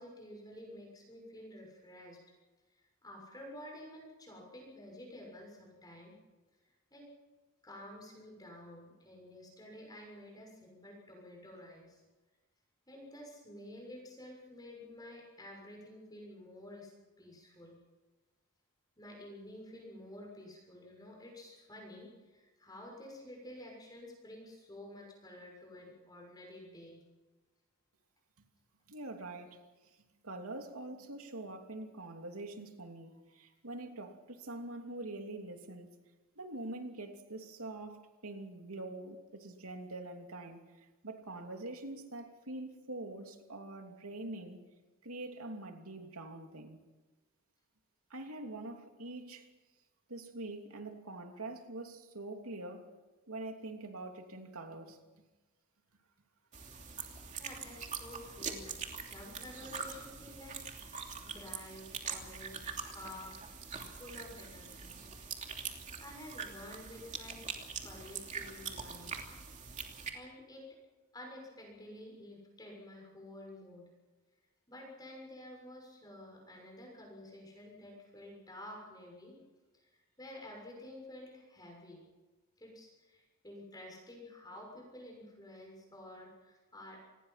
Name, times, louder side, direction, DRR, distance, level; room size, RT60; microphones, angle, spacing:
voice 1, 0.0-2.2 2.7-6.1 6.5-7.1 7.6-12.0 12.9-16.9 17.2-17.8 19.0-27.0 57.4-58.7 59.0-60.6 61.2-63.5 64.0-64.9 66.0-67.4 67.8-69.3 69.7-70.6 71.1-73.9 74.7-79.4 79.7-82.1 82.6-87.1, left 1 dB, 15° left, 6.7 m, -51 dB
voice 2, 28.9-30.0 30.2-36.0 36.4-44.6 45.0-46.8 48.1-49.5 50.1-52.9 53.3-55.0, right 2 dB, 75° right, 2.9 m, -44 dB
sound 1, 56.5-70.1, right 6 dB, 35° right, 3.0 m, -43 dB
28.0 x 20.5 x 5.9 m
head